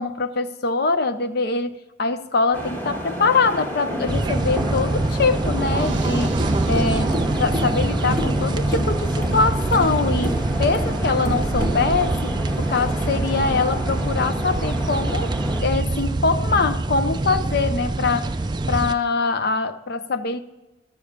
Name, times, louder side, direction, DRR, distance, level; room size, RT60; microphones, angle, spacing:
voice 1, 0.0-1.7 2.0-15.3 15.6-18.3 18.7-20.4, left 4 dB, 50° left, 0.5 m, -23 dB
sound 1, 2.5-15.6, equal, 10° left, 1.4 m, -30 dB
sound 2, 4.1-18.9, right 2 dB, 20° right, 0.4 m, -24 dB
sound 3, 5.4-15.3, right 3 dB, 70° right, 0.6 m, -39 dB
12.5 x 6.9 x 5.0 m
head